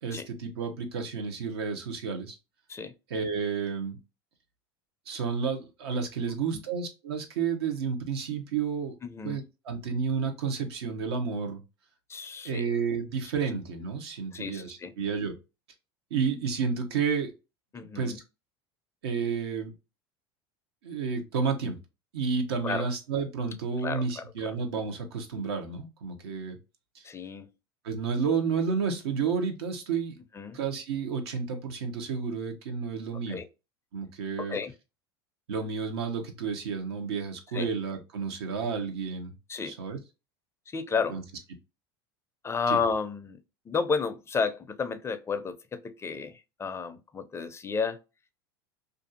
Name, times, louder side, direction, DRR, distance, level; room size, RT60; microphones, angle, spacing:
voice 1, 0.0-2.4 3.1-4.0 5.1-8.9 9.2-11.6 12.4-15.4 16.1-17.3 17.8-18.2 19.0-19.7 20.8-21.8 22.1-26.6 26.9-27.0 27.8-30.2 30.5-33.4 33.9-34.6 35.5-39.3 39.6-40.0 41.1-41.2 42.7-42.8, right 5 dB, 85° right, 0.8 m, -31 dB
voice 2, 12.1-12.7 14.3-14.9 17.7-18.2 22.6-22.9 23.8-24.6 27.0-27.5 30.3-30.6 33.3-33.5 34.4-34.7 37.5-37.7 39.5-39.7 40.7-41.2 42.4-43.4 43.7-48.0, left 5 dB, 20° left, 0.4 m, -32 dB
2.5 x 2.4 x 2.6 m
supercardioid pair, 105°, 13 cm